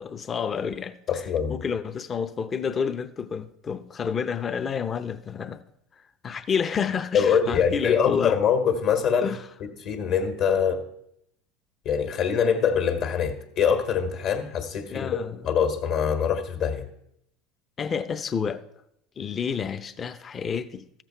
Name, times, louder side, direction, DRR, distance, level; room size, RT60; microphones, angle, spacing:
voice 1, 0.0-1.2 1.5-5.6 6.2-8.4 9.2-9.4 14.9-15.4 17.8-18.6 19.2-20.9, left 6 dB, 35° left, 0.7 m, -29 dB
voice 2, 1.1-1.6 7.1-9.3 9.6-10.8 11.8-16.9, left 7 dB, 60° left, 1.6 m, -24 dB
13.5 x 7.6 x 4.5 m
hypercardioid pair, 85°, 0 cm